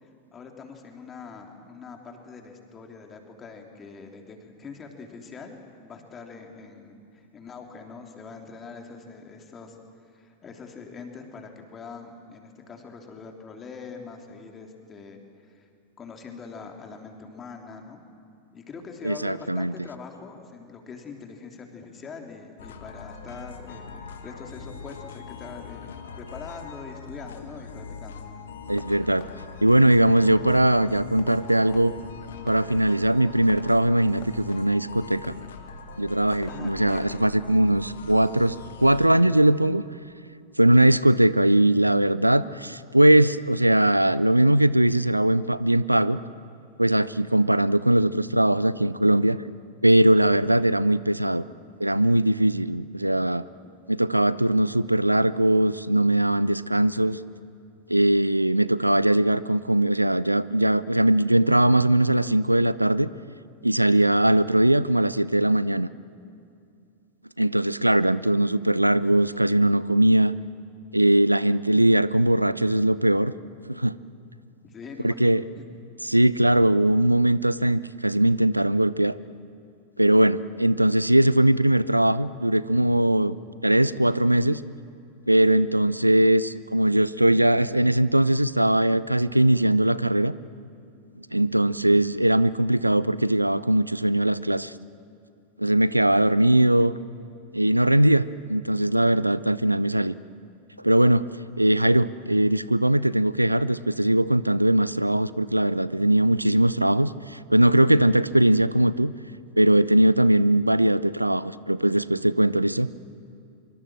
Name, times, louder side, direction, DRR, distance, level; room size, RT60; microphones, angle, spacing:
voice 1, 0.0-9.8 10.1-15.7 16.0-18.0 18.5-28.2 36.4-37.3 74.6-75.6, left 5 dB, 25° left, 3 dB, 3.3 m, -43 dB
voice 2, 19.0-19.7 28.7-29.3 29.6-31.9 32.5-35.3 36.0-39.8 40.6-46.2 46.8-49.4 49.8-51.4 51.8-53.4 53.9-57.2 57.9-63.1 63.6-65.9 67.4-70.3 70.9-73.3 73.7-73.9 75.0-75.4 76.0-79.2 80.0-83.4 83.6-84.6 85.3-90.3 91.3-94.7 95.6-96.9 97.5-100.1 100.8-101.2 101.6-109.1 109.6-112.9, right 1 dB, 85° right, 18 dB, 0.5 m, -20 dB
sound 1, 22.6-39.1, left 4 dB, 65° left, 2.0 m, -42 dB
Fireworks, 28.7-39.3, left 5 dB, 50° left, 3.3 m, -51 dB
24.5 x 24.0 x 7.6 m, 2.5 s
figure-of-eight pair, 90°, 0 cm